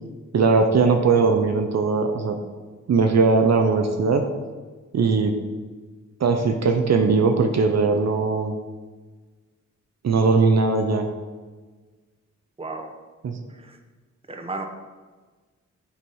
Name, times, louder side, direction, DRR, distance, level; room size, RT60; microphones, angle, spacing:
voice 1, 0.3-2.4 2.9-4.3 4.9-5.3 6.2-8.5 10.0-11.1 13.2-13.4, right 4 dB, 60° right, 5 dB, 0.7 m, -19 dB
voice 2, 12.6-12.9 13.5-13.8 14.3-14.7, right 3 dB, 20° right, 4 dB, 0.8 m, -33 dB
8.6 x 3.0 x 5.4 m, 1.3 s
cardioid pair, 75°, 30 cm